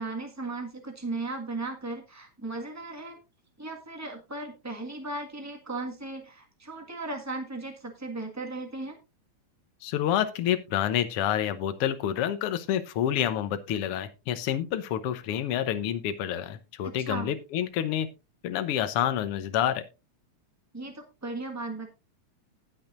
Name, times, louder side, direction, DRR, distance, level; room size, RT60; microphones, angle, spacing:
voice 1, 0.0-3.2 3.6-9.0 16.8-17.3 20.7-21.9, right 2 dB, 10° right, 3 dB, 0.7 m, -36 dB
voice 2, 9.8-18.1 18.4-19.8, left 10 dB, 65° left, 10 dB, 1.5 m, -28 dB
19.0 x 6.5 x 2.6 m, 0.27 s
omnidirectional pair, 3.5 m